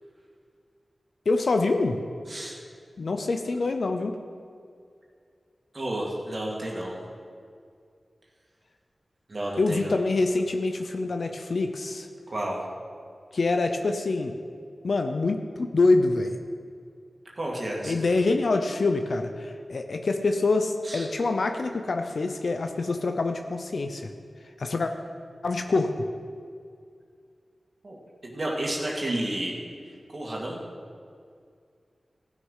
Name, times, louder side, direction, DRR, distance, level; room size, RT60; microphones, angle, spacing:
voice 1, 1.3-2.0 3.0-4.2 9.6-12.1 13.3-14.3 14.8-16.4 17.8-24.1 24.6-24.9 25.4-26.1, left 3 dB, 75° left, 6 dB, 0.6 m, -25 dB
voice 2, 2.3-2.6 5.7-7.0 9.3-10.0 12.3-12.7 17.4-18.2 20.8-21.1 27.8-28.0 28.2-29.6 30.1-30.6, right 1 dB, 55° right, -2 dB, 2.3 m, -31 dB
14.5 x 6.3 x 5.6 m, 2.2 s
cardioid pair, 45°, 0 cm